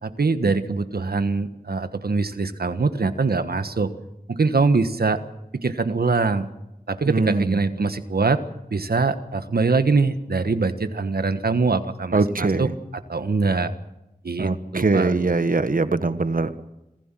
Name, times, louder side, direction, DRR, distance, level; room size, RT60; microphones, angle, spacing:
voice 1, 0.0-3.9 4.3-5.2 5.5-6.5 6.9-8.4 8.7-12.7 13.1-13.7 14.2-15.3, right 4 dB, 85° right, 10 dB, 1.4 m, -23 dB
voice 2, 7.1-7.6 12.1-12.7 14.4-16.6, right 3 dB, 65° right, 11 dB, 1.3 m, -22 dB
26.5 x 15.5 x 7.6 m, 0.92 s
wide cardioid pair, 65°, 15 cm